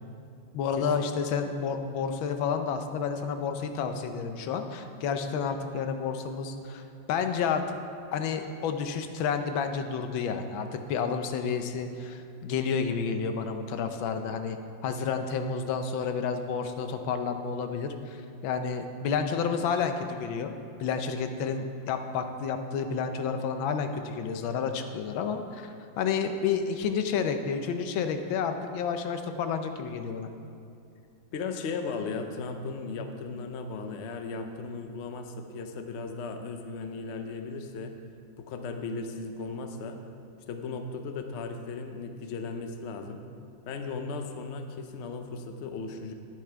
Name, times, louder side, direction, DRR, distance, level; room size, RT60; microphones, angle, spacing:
voice 1, 0.5-6.8 7.1-7.6 8.1-14.6 14.8-20.5 20.8-30.3, left 6 dB, 90° left, 7 dB, 1.5 m, -30 dB
voice 2, 31.3-37.9 38.4-40.0 40.5-43.2 43.6-46.1, left 4 dB, 65° left, 6 dB, 0.6 m, -36 dB
9.8 x 8.6 x 4.5 m, 2.6 s
omnidirectional pair, 2.1 m